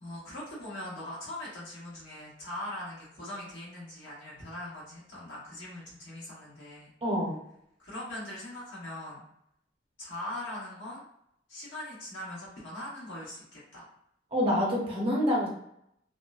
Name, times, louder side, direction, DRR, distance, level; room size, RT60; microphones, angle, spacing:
voice 1, 0.0-6.9 7.8-9.2 10.0-11.0 11.5-13.9, left 1 dB, 90° left, -6 dB, 1.3 m, -41 dB
voice 2, 7.0-7.4 14.3-15.5, equal, 30° right, -3 dB, 0.7 m, -26 dB
2.8 x 2.0 x 2.3 m, 0.74 s
head